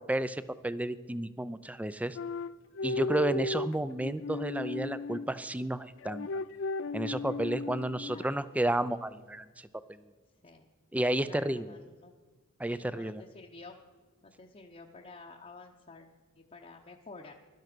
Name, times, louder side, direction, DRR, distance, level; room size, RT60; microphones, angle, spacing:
voice 1, 0.0-2.2 2.8-6.3 6.9-10.0 10.9-11.7 12.6-13.2, right 1 dB, 5° right, 15 dB, 0.4 m, -32 dB
sound 1, 2.1-5.3 6.0-8.3, left 2 dB, 60° left, 0.4 m, -35 dB
voice 2, 8.1-8.6 10.4-10.7 11.3-12.1 12.7-13.8 14.2-17.3, left 3 dB, 30° left, 0 dB, 0.8 m, -51 dB
16.0 x 12.0 x 6.1 m, 1.4 s
head